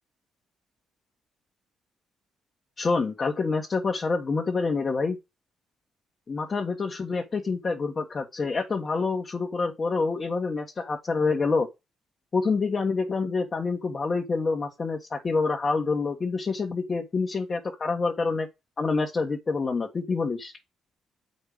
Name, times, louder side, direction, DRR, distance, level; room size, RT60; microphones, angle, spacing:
voice 1, 2.8-5.2 6.3-11.7 12.3-18.5 18.8-20.5, left 4 dB, 35° left, 1.6 m, -27 dB
7.9 x 5.5 x 5.1 m
cardioid pair, 90°, 0 cm